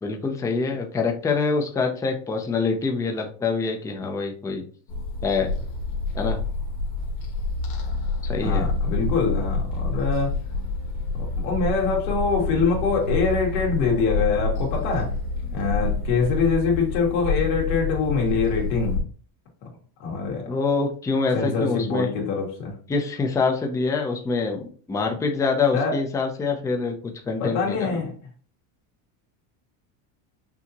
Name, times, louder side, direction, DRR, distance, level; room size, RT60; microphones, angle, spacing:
voice 1, 0.0-4.6 5.2-5.5 6.1-6.4 8.2-8.7 20.5-22.1 22.9-28.0, left 4 dB, 5° left, 0.4 m, -25 dB
sound 1, 4.9-19.0, left 3 dB, 45° left, 1.5 m, -28 dB
voice 2, 8.4-10.3 11.1-15.1 15.5-19.0 20.0-20.5 21.3-22.7 25.7-26.0 27.4-28.1, left 5 dB, 90° left, 2.1 m, -24 dB
5.9 x 2.8 x 2.8 m
cardioid pair, 140°, 50 cm